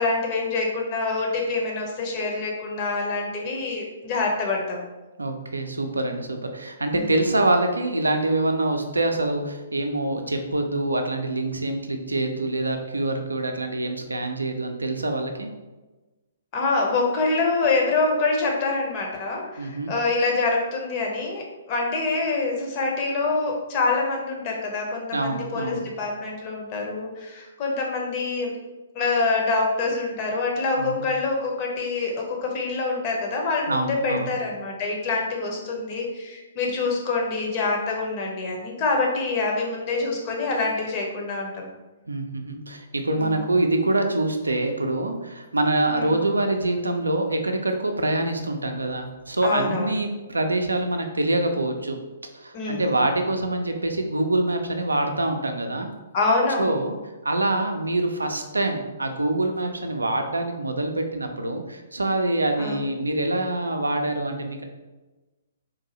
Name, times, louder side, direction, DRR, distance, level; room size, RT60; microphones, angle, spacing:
voice 1, 0.0-4.9 6.9-7.1 16.5-28.5 28.9-41.5 43.2-43.4 45.9-46.2 49.4-50.0 52.5-52.9 56.1-56.8 62.6-62.8, left 3 dB, 30° left, -1 dB, 0.8 m, -26 dB
voice 2, 5.2-15.5 19.6-19.9 25.1-25.9 30.8-31.0 33.7-34.4 42.0-52.0 52.3-55.9 56.6-57.0 57.2-64.6, right 2 dB, 75° right, 5 dB, 0.4 m, -25 dB
3.8 x 2.6 x 2.8 m, 1.1 s
figure-of-eight pair, 120°, 0 cm